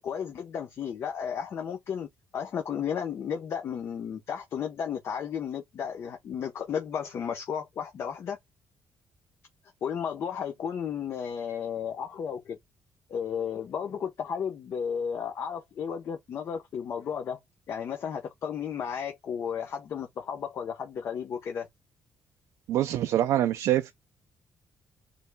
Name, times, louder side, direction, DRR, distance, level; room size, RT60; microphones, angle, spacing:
voice 1, 0.0-2.1 2.3-8.4 9.8-12.6 13.1-17.4 17.7-21.7, left 7 dB, 50° left, 0.9 m, -33 dB
voice 2, 22.7-23.9, right 12 dB, 80° right, 0.6 m, -25 dB
7.0 x 3.4 x 2.2 m
cardioid pair, 140°, 5 cm